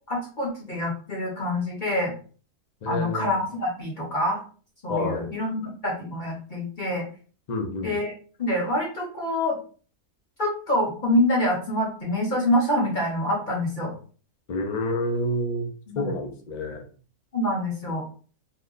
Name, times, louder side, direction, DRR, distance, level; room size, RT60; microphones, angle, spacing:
voice 1, 0.1-2.1 2.8-4.4 4.8-7.0 7.8-8.1 8.4-9.6 10.4-13.9 15.9-16.1 17.3-18.0, left 1 dB, 40° left, -2 dB, 0.8 m, -26 dB
voice 2, 2.8-3.3 4.9-5.3 7.5-8.0 14.5-15.7 16.0-16.8, left 1 dB, 60° left, 3 dB, 0.4 m, -28 dB
2.9 x 2.2 x 3.7 m, 0.40 s
omnidirectional pair, 1.6 m